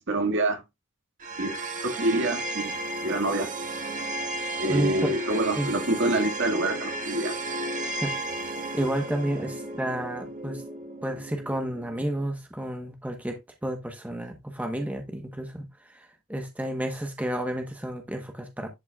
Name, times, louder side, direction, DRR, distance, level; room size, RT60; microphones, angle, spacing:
voice 1, 0.1-0.6 1.4-2.7 3.0-3.5 4.6-7.4, right 2 dB, 55° right, 1.8 m, -26 dB
sound 1, 1.2-12.3, right 2 dB, 35° right, 1.6 m, -34 dB
voice 2, 4.7-5.1 5.6-5.7 8.0-8.1 8.7-10.6 11.0-18.7, right 1 dB, 5° right, 0.9 m, -31 dB
11.0 x 5.4 x 2.3 m
head